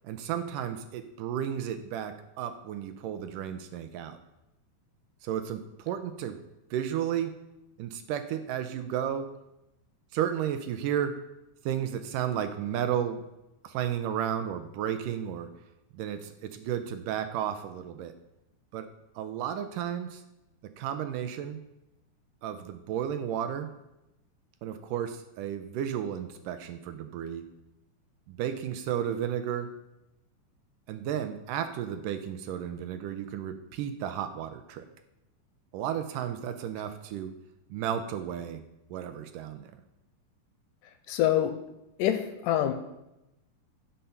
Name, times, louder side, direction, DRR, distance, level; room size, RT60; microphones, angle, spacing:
voice 1, 0.0-4.2 5.2-6.4 6.7-7.4 7.8-9.3 10.1-11.2 11.7-13.2 13.6-15.5 15.9-18.1 18.7-18.9 19.2-20.2 20.6-21.6 22.4-23.7 24.6-27.4 28.3-29.7 30.9-34.9 35.7-37.4 37.7-38.6 38.9-39.7, right 9 dB, 80° right, 9 dB, 2.1 m, -33 dB
voice 2, 41.1-41.5 42.0-42.7, left 12 dB, 80° left, 9 dB, 2.1 m, -25 dB
11.5 x 5.6 x 5.7 m, 0.92 s
omnidirectional pair, 4.1 m